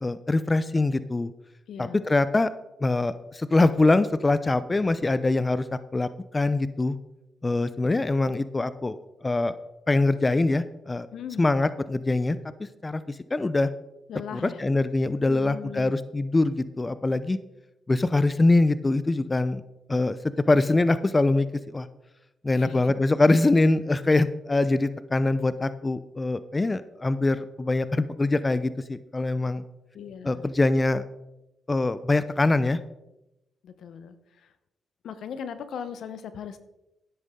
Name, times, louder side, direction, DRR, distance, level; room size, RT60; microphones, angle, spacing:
voice 1, 0.0-1.3 1.8-2.5 2.8-5.7 5.9-7.0 7.4-9.0 9.2-9.6 9.9-11.1 11.4-13.7 14.3-17.4 17.9-19.6 19.9-20.2 20.5-21.9 22.4-29.6 30.2-31.0 31.7-32.8, left 2 dB, 30° left, 14 dB, 0.6 m, -23 dB
voice 2, 11.1-11.4 14.1-14.6 15.3-15.9 22.5-22.7 29.9-30.5 33.6-34.1 35.0-36.6, left 8 dB, 75° left, 11 dB, 1.0 m, -38 dB
12.5 x 10.0 x 3.8 m, 0.93 s
supercardioid pair, 50°, 0 cm